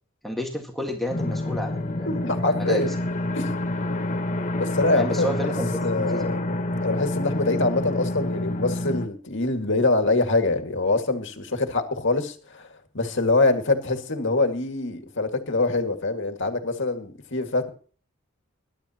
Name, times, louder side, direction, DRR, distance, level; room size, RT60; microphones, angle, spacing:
voice 1, 0.2-2.1 2.5-3.0 4.9-6.4, equal, ahead, 0 dB, 1.8 m, -31 dB
sound 1, 1.1-9.1, left 1 dB, 40° left, 1.3 m, -28 dB
voice 2, 2.1-2.9 3.3-3.5 4.6-5.4 5.8-6.4 6.8-12.7 12.9-17.7, left 2 dB, 65° left, 5 dB, 2.1 m, -24 dB
21.5 x 11.5 x 3.0 m, 0.41 s
head